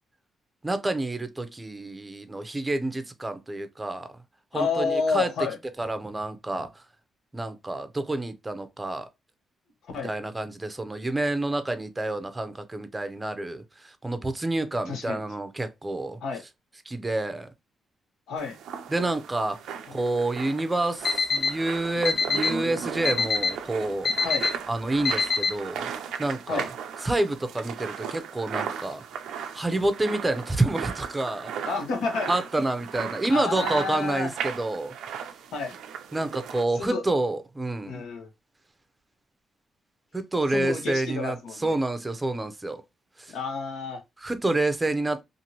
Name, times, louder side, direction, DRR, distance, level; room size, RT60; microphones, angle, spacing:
voice 1, 0.6-4.2 4.5-5.5 5.8-6.8 7.3-9.1 10.0-16.2 16.8-17.5 18.9-19.6 19.9-24.1 24.7-25.9 26.2-26.7 27.0-29.0 29.5-31.7 32.3-35.0 36.1-38.0 40.1-42.8 43.2-43.3 44.2-45.2, right 2 dB, 15° right, 0.5 m, -28 dB
voice 2, 4.5-5.6 9.9-10.1 14.9-15.2 16.2-16.4 18.3-18.5 24.2-24.5 26.5-26.7 31.7-32.3 33.3-34.3 35.5-35.8 36.8-37.0 37.9-38.3 40.5-41.7 43.3-44.0, left 4 dB, 80° left, 1.0 m, -29 dB
sound 1, 18.4-36.6, right 8 dB, 85° right, 0.4 m, -37 dB
Alarm, 21.0-21.5 22.0-22.5 23.0-23.5 24.0-24.5 25.0-25.5, left 5 dB, 55° left, 0.5 m, -23 dB
2.7 x 2.5 x 2.8 m
cardioid pair, 90°, 0 cm